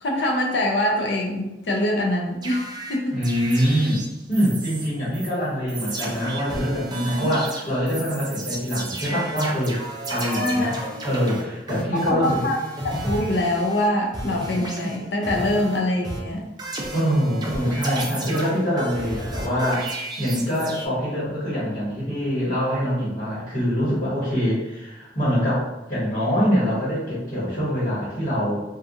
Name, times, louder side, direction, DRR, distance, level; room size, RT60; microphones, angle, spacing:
voice 1, 0.0-3.2 10.4-10.8 12.1-12.6 13.0-16.4, left 1 dB, 80° left, 0 dB, 0.6 m, -24 dB
sound 1, 2.4-4.9 5.1-5.3 5.7-13.9 14.1-15.8 16.0-20.9, right 1 dB, 25° right, 0.4 m, -33 dB
voice 2, 3.1-4.0 4.3-9.8 10.1-10.7 11.0-12.4 16.9-28.6, equal, 40° left, -10 dB, 1.2 m, -24 dB
2.8 x 2.3 x 2.5 m, 0.98 s
head